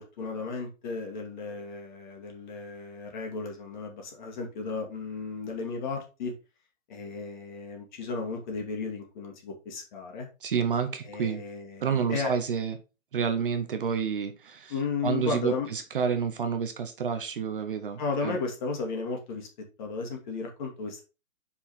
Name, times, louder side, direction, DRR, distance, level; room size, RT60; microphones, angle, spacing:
voice 1, 0.0-6.3 6.9-10.3 11.0-12.3 14.7-15.7 18.0-19.5 19.8-21.0, left 4 dB, 35° left, 2.0 m, -34 dB
voice 2, 10.4-11.4 11.8-12.8 13.1-14.7 15.0-18.4, right 6 dB, 40° right, 0.8 m, -29 dB
5.5 x 4.7 x 4.3 m
hypercardioid pair, 150°, 41 cm